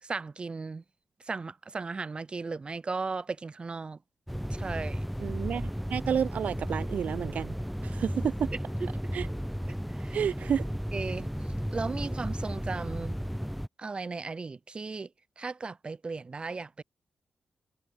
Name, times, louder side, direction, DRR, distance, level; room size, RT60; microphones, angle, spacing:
voice 1, 0.0-0.8 1.3-4.0 4.5-5.0 9.7-10.2 10.9-11.3 11.7-13.2 13.8-15.1 15.4-16.8, right 4 dB, 45° right, 2.0 m, -36 dB
sound 1, 4.3-13.7, equal, ahead, 0.9 m, -34 dB
voice 2, 5.2-7.5 7.8-8.5 9.1-9.3 10.1-10.7, right 8 dB, 80° right, 0.8 m, -30 dB
cardioid pair, 65°, 2 cm